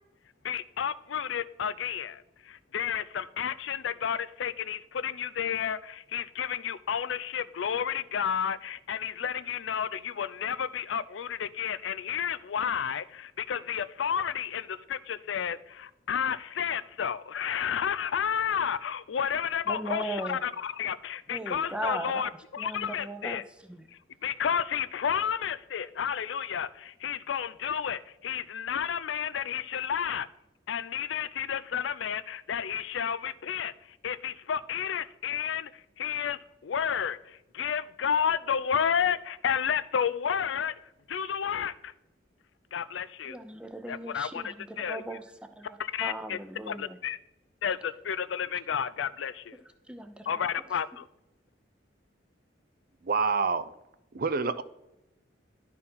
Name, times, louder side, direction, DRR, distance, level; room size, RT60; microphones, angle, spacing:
voice 1, 0.4-23.4 24.2-30.3 30.7-33.7 34.0-40.7 41.1-41.9 42.7-43.4 43.9-45.0 45.8-46.4 46.7-47.2 47.6-49.6 50.3-51.1, left 8 dB, 90° left, 0.4 m, -31 dB
voice 2, 19.7-20.4 21.3-22.2 22.6-23.9 43.2-45.3 45.6-47.0 49.9-50.3, right 1 dB, 5° right, 0.6 m, -38 dB
voice 3, 53.0-53.7 54.1-54.6, right 5 dB, 50° right, 0.5 m, -27 dB
11.0 x 4.5 x 5.5 m
head